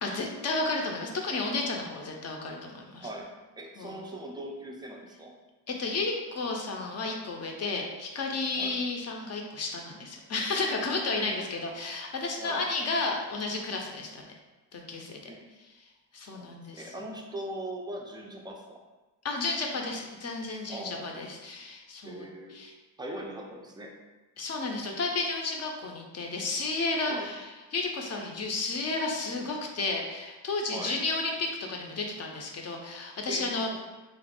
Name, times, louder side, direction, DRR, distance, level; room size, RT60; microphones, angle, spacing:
voice 1, 0.0-3.1 3.8-4.0 5.7-14.3 14.7-15.2 16.1-16.9 19.2-22.7 24.4-33.7, left 3 dB, 40° left, 1 dB, 0.5 m, -32 dB
voice 2, 2.9-3.3 3.6-5.3 8.5-8.8 11.2-11.6 12.4-12.6 15.3-15.4 16.2-18.8 20.7-21.2 22.0-22.6 23.0-23.9 27.1-27.3 30.7-31.0 33.3-33.8, right 1 dB, 10° right, 1 dB, 0.3 m, -40 dB
3.0 x 2.4 x 4.3 m, 1.2 s
cardioid pair, 140°, 41 cm